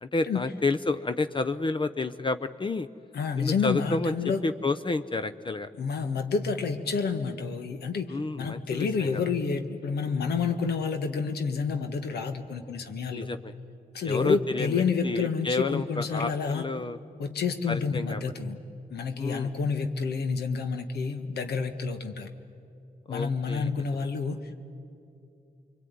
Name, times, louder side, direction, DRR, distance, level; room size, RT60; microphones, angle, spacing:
voice 1, 0.0-2.9 3.4-4.1 4.4-5.7 8.1-9.2 13.1-13.5 14.0-17.0 17.7-18.2 19.2-19.5 23.1-23.7, left 3 dB, 30° left, 10 dB, 0.7 m, -30 dB
voice 2, 3.1-4.4 5.8-13.3 13.9-16.6 17.2-18.6 18.9-22.3 23.1-24.6, left 5 dB, 85° left, 8 dB, 1.4 m, -29 dB
25.0 x 23.5 x 9.5 m, 2.6 s
cardioid pair, 70°, 16 cm